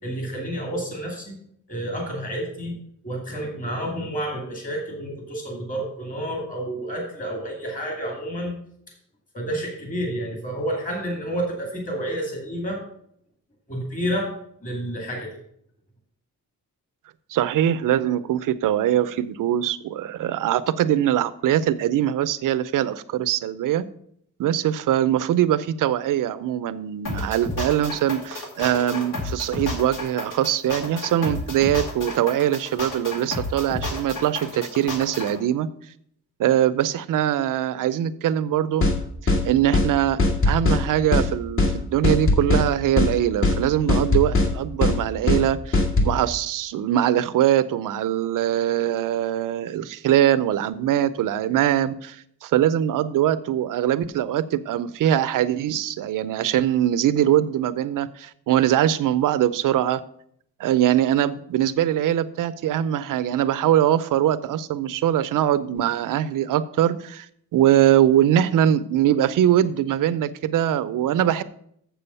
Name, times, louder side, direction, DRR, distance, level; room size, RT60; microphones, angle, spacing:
voice 1, 0.0-1.4 1.7-2.8 3.0-8.5 9.3-12.8 13.7-14.3 14.6-15.3, right 1 dB, 25° left, 0 dB, 2.4 m, -29 dB
voice 2, 17.3-23.8 24.4-35.7 36.4-38.8 39.4-60.0 60.6-67.3 67.5-71.4, right 11 dB, 70° right, 14 dB, 0.6 m, -22 dB
sound 1, 27.0-35.3, left 2 dB, 70° left, 2.4 m, -31 dB
sound 2, 38.8-39.0 39.3-39.4 39.7-39.9 40.2-40.8 41.1-41.3 41.6-41.7 42.0-42.7 43.0-43.1 43.4-43.6 43.9-44.5 44.8-45.0 45.3-45.4 45.7-46.1, left 2 dB, 40° left, 1.7 m, -19 dB
7.5 x 7.0 x 5.6 m, 0.68 s
cardioid pair, 150°, 33 cm